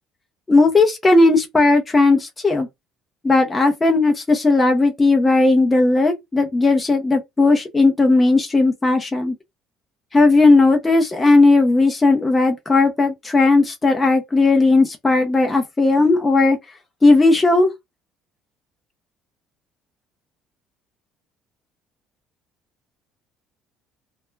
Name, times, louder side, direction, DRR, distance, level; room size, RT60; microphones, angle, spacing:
voice 1, 0.5-2.7 3.2-9.3 10.1-16.6 17.0-17.7, left 3 dB, 15° left, 0.5 m, -16 dB
2.2 x 2.1 x 3.1 m
cardioid pair, 150°, 0 cm